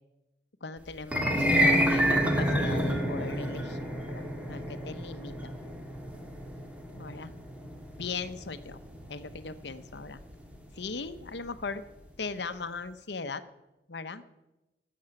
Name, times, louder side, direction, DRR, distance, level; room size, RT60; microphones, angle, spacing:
voice 1, 0.6-4.2 4.5-5.5 7.0-7.3 8.0-8.8 9.1-10.2 10.7-11.8 12.2-13.4 13.9-14.2, left 4 dB, 75° left, 12 dB, 0.9 m, -39 dB
sound 1, 1.0-11.3, equal, 5° right, 1.8 m, -29 dB
13.5 x 7.7 x 9.0 m, 0.99 s
head